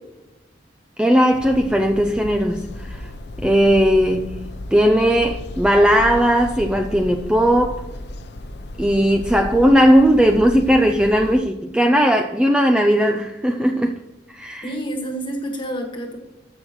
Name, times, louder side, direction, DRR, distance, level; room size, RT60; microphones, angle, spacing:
voice 1, 1.0-3.1 3.4-7.8 8.8-14.0 14.3-14.6, equal, 5° right, 4 dB, 0.4 m, -17 dB
sound 1, 1.3-11.4, left 1 dB, 55° left, 0.7 m, -34 dB
voice 2, 14.6-16.2, right 1 dB, 25° left, 2 dB, 1.6 m, -28 dB
14.0 x 6.3 x 3.0 m, 1.0 s
head